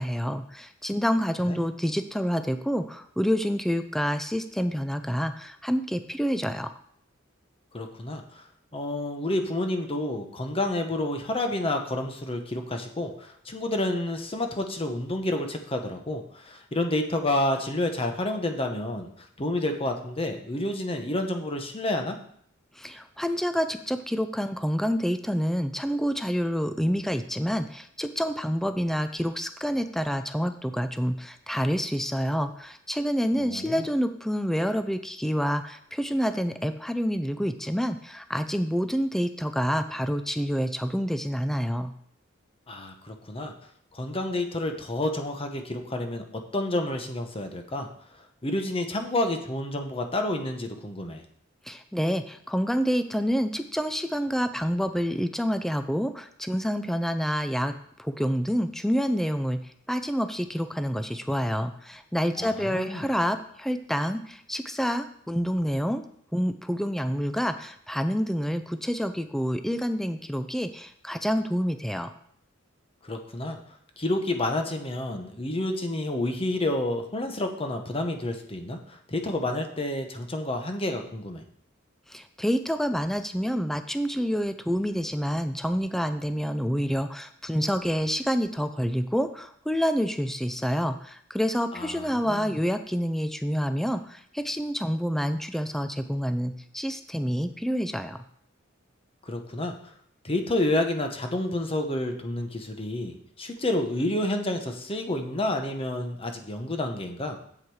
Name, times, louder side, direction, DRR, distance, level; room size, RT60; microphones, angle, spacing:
voice 1, 0.0-6.7 22.8-41.9 51.6-57.7 58.0-59.6 59.9-66.0 66.3-72.1 82.1-98.2, equal, ahead, 9 dB, 0.4 m, -28 dB
voice 2, 7.7-8.4 8.7-22.2 33.4-33.8 42.7-43.5 43.9-47.9 48.1-51.2 62.4-63.1 73.0-73.6 74.0-81.4 91.7-92.5 99.3-99.7 100.2-107.4, left 1 dB, 30° left, 5 dB, 1.0 m, -29 dB
8.0 x 7.5 x 4.8 m, 0.64 s
head